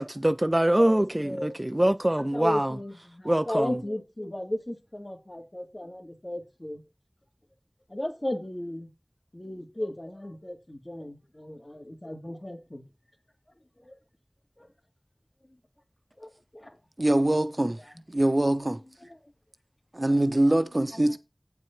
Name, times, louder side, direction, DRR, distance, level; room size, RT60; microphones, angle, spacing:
voice 1, 0.0-2.8 3.2-3.7, right 1 dB, 30° right, 0.4 m, -24 dB
voice 2, 0.7-1.6 2.2-6.8 7.9-8.9 9.3-12.8 13.8-13.9 14.6-14.7 16.2-16.8, left 1 dB, 45° left, 1.9 m, -35 dB
voice 3, 17.0-17.8 18.1-18.8 19.9-21.2, right 1 dB, 50° right, 0.8 m, -23 dB
8.8 x 4.7 x 5.9 m
wide cardioid pair, 40°, 0 cm